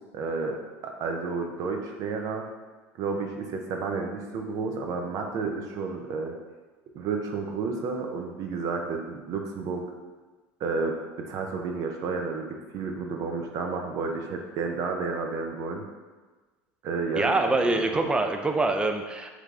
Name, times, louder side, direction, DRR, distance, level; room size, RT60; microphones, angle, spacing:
voice 1, 0.1-2.4 3.0-6.3 6.9-9.8 10.6-15.8 16.8-18.1, right 4 dB, 55° right, 3 dB, 0.6 m, -31 dB
voice 2, 17.2-19.3, right 2 dB, 15° right, 5 dB, 0.4 m, -25 dB
3.4 x 3.2 x 3.7 m, 1.3 s
hypercardioid pair, 90°, 7 cm